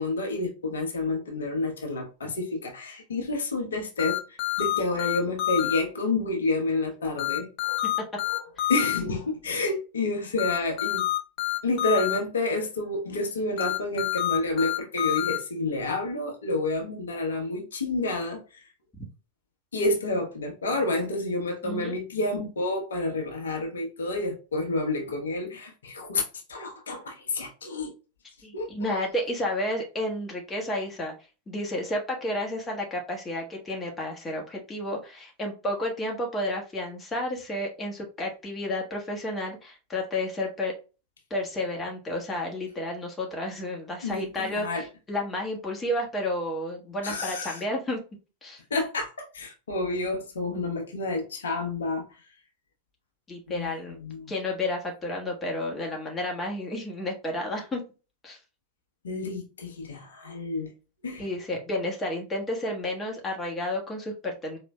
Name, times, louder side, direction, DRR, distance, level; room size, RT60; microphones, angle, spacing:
voice 1, 0.0-7.8 8.3-8.4 8.7-11.1 11.6-18.6 19.7-26.2 26.5-27.9 28.5-29.0 44.0-44.8 47.0-47.6 48.7-52.1 53.5-53.7 54.0-54.3 59.0-60.7 61.0-61.2, left 2 dB, 65° left, 0.9 m, -29 dB
sound 1, 4.0-5.8 7.2-9.0 10.4-12.2 13.6-15.4, left 15 dB, 40° left, 0.7 m, -27 dB
voice 2, 21.6-21.9 28.4-31.1 31.5-40.7 41.3-48.0 48.4-48.6 53.3-54.0 54.3-57.8 58.2-58.4 61.2-64.6, left 1 dB, 15° left, 1.2 m, -31 dB
4.4 x 3.0 x 2.2 m
figure-of-eight pair, 90°, 0 cm